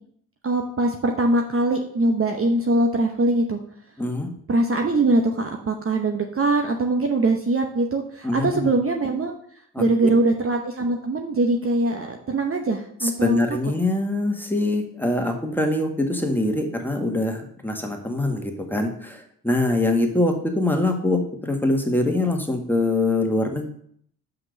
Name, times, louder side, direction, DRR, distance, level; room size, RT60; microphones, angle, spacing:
voice 1, 0.4-3.6 4.5-9.3 9.8-13.4, right 2 dB, 35° right, 3 dB, 0.9 m, -22 dB
voice 2, 4.0-4.3 8.2-8.7 9.7-10.1 13.0-23.7, left 2 dB, 5° left, 2 dB, 1.7 m, -24 dB
5.7 x 5.1 x 6.6 m, 0.65 s
hypercardioid pair, 45°, 40 cm